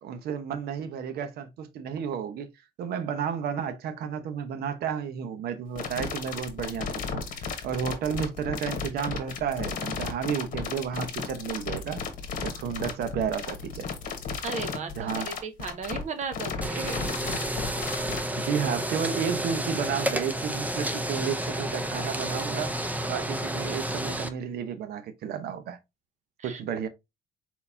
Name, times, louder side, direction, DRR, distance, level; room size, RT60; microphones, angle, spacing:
voice 1, 0.0-2.5 2.8-7.2 7.6-12.0 12.4-13.9 15.0-15.3 18.3-22.7 23.1-25.8 26.4-26.9, right 7 dB, 70° right, 0.8 m, -32 dB
sound 1, 5.8-18.2, left 5 dB, 55° left, 1.2 m, -34 dB
voice 2, 14.4-17.1 26.4-26.6, right 5 dB, 45° right, 1.0 m, -36 dB
sound 2, 16.6-24.3, right 1 dB, 10° right, 0.6 m, -31 dB
4.2 x 4.1 x 2.7 m
cardioid pair, 110°, 17 cm